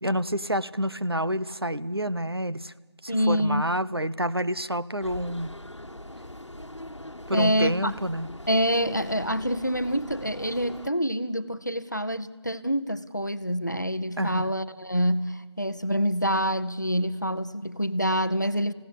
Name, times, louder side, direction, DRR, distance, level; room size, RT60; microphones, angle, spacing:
voice 1, 0.0-2.7 3.0-5.5 7.3-8.3 14.2-14.5, equal, 60° right, 14 dB, 0.8 m, -28 dB
voice 2, 3.1-3.7 7.3-7.9 8.5-18.7, equal, 40° left, 12 dB, 0.8 m, -26 dB
sound 1, 5.0-10.9, left 1 dB, 90° left, 1.3 m, -42 dB
19.5 x 16.0 x 8.3 m, 1.3 s
figure-of-eight pair, 180°, 15 cm